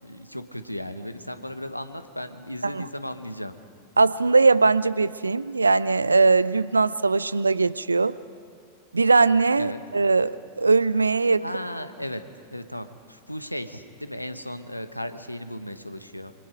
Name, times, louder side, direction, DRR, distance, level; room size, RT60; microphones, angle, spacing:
voice 1, 0.0-3.5 9.6-9.8 11.4-12.2 12.5-16.3, left 1 dB, 90° left, 10 dB, 1.1 m, -35 dB
voice 2, 4.0-8.1 8.9-11.4, right 3 dB, 80° right, 18 dB, 0.5 m, -20 dB
27.0 x 24.5 x 5.2 m, 2.3 s
figure-of-eight pair, 90°, 0 cm